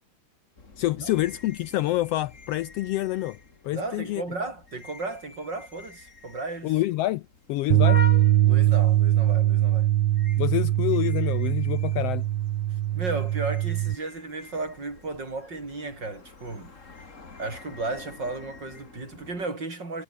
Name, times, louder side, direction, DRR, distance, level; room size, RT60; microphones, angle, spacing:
sound 1, 0.6-19.5, left 4 dB, 25° left, 2.7 m, -45 dB
voice 1, 0.8-3.4 3.6-4.2 6.6-7.2 7.5-8.0 10.4-12.2, left 16 dB, 80° left, 1.4 m, -27 dB
voice 2, 3.7-6.8 8.4-9.9 12.7-16.7 17.4-20.0, right 3 dB, 35° right, 5.9 m, -34 dB
Bass guitar, 7.7-14.0, right 13 dB, 65° right, 1.7 m, -22 dB
omnidirectional pair, 3.3 m